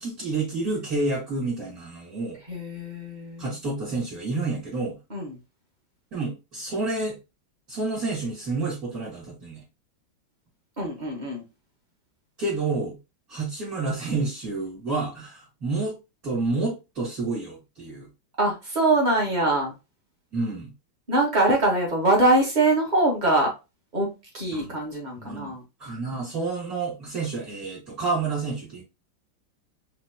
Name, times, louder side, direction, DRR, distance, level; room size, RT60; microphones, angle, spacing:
voice 1, 0.0-2.4 3.4-5.0 6.1-7.2 7.7-9.6 12.4-13.0 13.3-16.0 16.2-18.1 20.3-20.7 24.5-24.7 25.2-25.5 25.8-28.8, right 3 dB, 45° right, 3.0 m, -29 dB
voice 2, 2.5-3.5 5.1-5.3 10.8-11.4 18.4-19.7 21.1-23.5 23.9-24.1 24.3-25.6, right 2 dB, 25° right, 1.8 m, -23 dB
5.0 x 3.4 x 2.9 m
omnidirectional pair, 2.3 m